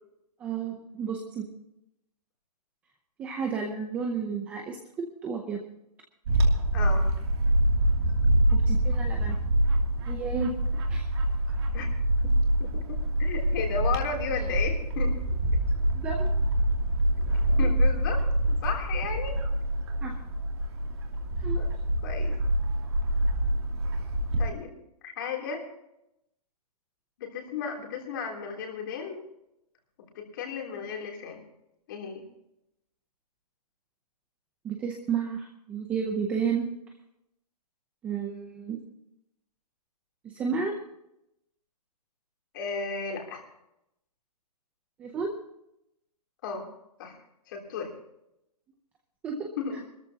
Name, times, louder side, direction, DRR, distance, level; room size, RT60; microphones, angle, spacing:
voice 1, 0.4-1.5 3.2-4.8 5.2-5.6 8.5-9.4 10.1-10.5 10.9-11.0 15.9-16.3 20.0-20.1 21.4-21.6 34.6-36.6 38.0-38.8 40.2-40.8 45.0-45.3 49.2-49.5, right 6 dB, 5° right, 2 dB, 0.7 m, -31 dB
Bird / Wind, 6.3-24.5, right 1 dB, 40° right, 2.8 m, -25 dB
voice 2, 6.7-7.0 11.7-11.9 12.6-12.7 13.2-15.2 17.6-19.4 21.5-21.7 22.0-22.4 24.4-24.7 25.0-25.6 27.2-29.2 30.2-31.4 31.9-32.2 42.5-43.4 46.4-46.7 47.0-47.2 47.5-47.9 49.6-49.8, left 6 dB, 30° left, 1 dB, 3.3 m, -34 dB
22.0 x 13.5 x 2.9 m, 0.82 s
hypercardioid pair, 175°, 20 cm